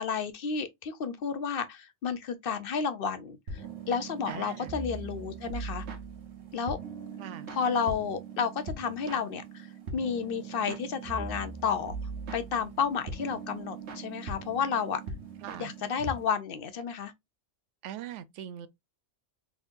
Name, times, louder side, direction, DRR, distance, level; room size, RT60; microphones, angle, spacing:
voice 1, 0.0-5.9 6.5-6.8 7.5-12.0 12.3-15.0 15.6-17.1, left 6 dB, 60° left, 0.7 m, -31 dB
sound 1, 3.5-16.3, right 4 dB, 75° right, 1.3 m, -41 dB
voice 2, 4.3-4.8 7.2-7.5 15.4-15.7 17.8-18.7, right 10 dB, 90° right, 0.9 m, -41 dB
3.7 x 3.5 x 2.6 m
omnidirectional pair, 1.2 m